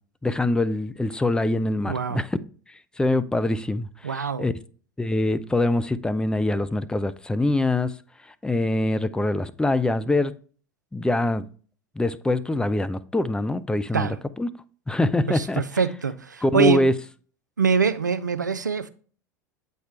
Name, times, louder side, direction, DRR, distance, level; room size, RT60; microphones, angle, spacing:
voice 1, 0.2-2.3 3.0-4.5 5.0-7.9 8.4-10.3 10.9-11.5 12.0-14.5 14.9-15.6 16.4-16.9, left 2 dB, 10° left, 0.5 m, -24 dB
voice 2, 1.9-2.2 4.0-4.5 13.9-14.2 15.3-16.8 17.6-18.9, right 6 dB, 90° right, 0.4 m, -24 dB
8.0 x 4.3 x 3.2 m
figure-of-eight pair, 80°, 9 cm